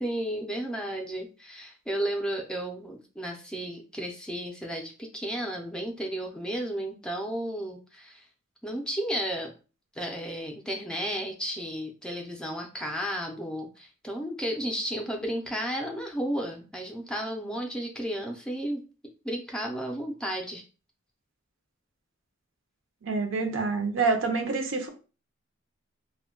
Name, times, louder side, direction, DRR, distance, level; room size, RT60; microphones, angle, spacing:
voice 1, 0.0-8.2 8.6-9.5 10.0-18.8 19.2-20.6, right 1 dB, 5° left, 1 dB, 0.4 m, -33 dB
voice 2, 23.0-24.9, right 4 dB, 70° right, 4 dB, 0.6 m, -27 dB
2.2 x 2.1 x 3.7 m, 0.35 s
head